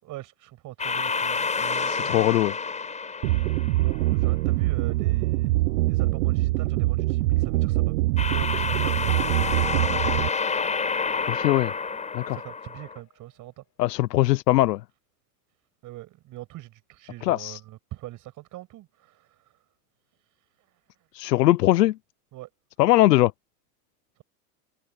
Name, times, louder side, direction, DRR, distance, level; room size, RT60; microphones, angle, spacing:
voice 1, 0.0-2.3 3.8-5.5 5.9-7.9 8.3-10.3 12.3-13.6 15.8-19.4 22.3-22.5, right 16 dB, 40° right, 7.3 m, -41 dB
sound 1, 0.8-4.1 8.2-13.0, left 5 dB, 15° left, 7.5 m, -29 dB
voice 2, 1.9-2.5 11.3-11.7 12.1-12.4 13.8-14.8 17.2-17.6 21.1-22.0 22.8-23.3, left 16 dB, 85° left, 0.9 m, -21 dB
sound 2, 3.2-10.3, right 18 dB, 65° right, 0.9 m, -24 dB
sound 3, 9.1-13.3, left 15 dB, 35° left, 4.1 m, -42 dB
supercardioid pair, 130°, 47 cm